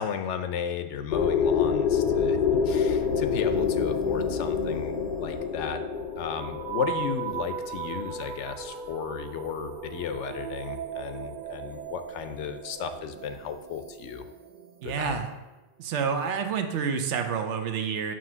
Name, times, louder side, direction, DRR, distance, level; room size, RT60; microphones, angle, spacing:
voice 1, 0.0-5.8 6.2-14.3 14.8-15.2, left 7 dB, 80° left, 9 dB, 0.9 m, -34 dB
sound 1, 1.1-8.9, left 7 dB, 60° left, 0.6 m, -27 dB
sound 2, 2.4-15.2, right 7 dB, 55° right, 0.5 m, -38 dB
voice 2, 14.8-15.3 15.8-18.1, right 6 dB, 80° right, 6 dB, 1.0 m, -28 dB
7.4 x 3.1 x 6.0 m, 1.1 s
omnidirectional pair, 1.2 m